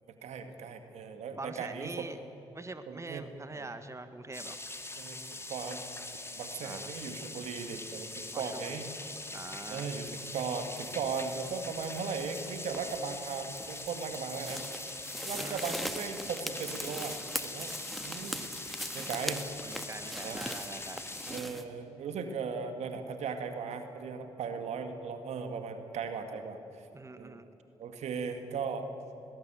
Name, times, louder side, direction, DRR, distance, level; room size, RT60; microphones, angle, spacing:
voice 1, 0.2-2.2 2.9-3.7 5.0-5.8 6.4-8.9 9.7-14.6 15.2-17.2 17.4-17.7 18.0-18.4 18.9-19.5 20.2-20.4 21.3-26.9 27.2-27.4 27.8-28.9, right 5 dB, 70° right, 7 dB, 2.0 m, -37 dB
voice 2, 1.3-2.2 2.5-4.6 6.6-6.9 8.3-8.8 9.3-9.9 15.4-15.6 19.6-21.1 26.9-27.4, right 2 dB, 25° right, 10 dB, 1.6 m, -43 dB
sound 1, 4.3-21.4, left 2 dB, 20° left, 2.3 m, -43 dB
sound 2, 10.0-21.6, equal, ahead, 1.8 m, -42 dB
21.0 x 19.0 x 8.0 m, 2.8 s
hypercardioid pair, 40°, 12 cm